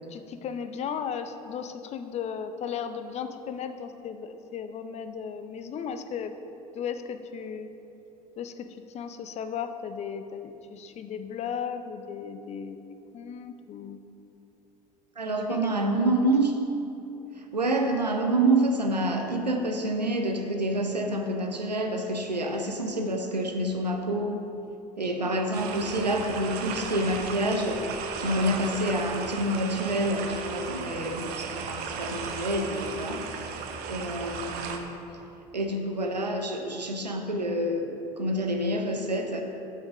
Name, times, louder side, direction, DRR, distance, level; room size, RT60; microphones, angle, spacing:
voice 1, 0.1-6.3 6.7-7.7 8.4-12.8 13.1-14.0 15.5-16.1 25.2-25.4, left 7 dB, 35° left, 9 dB, 0.5 m, -36 dB
voice 2, 15.2-16.5 17.5-24.4 25.0-27.9 28.2-33.5 33.9-35.0 35.5-39.4, right 1 dB, 90° right, 4 dB, 0.7 m, -27 dB
sound 1, 25.5-34.8, right 6 dB, 50° right, 0.8 m, -36 dB
6.4 x 5.9 x 6.1 m, 2.8 s
figure-of-eight pair, 70°, 21 cm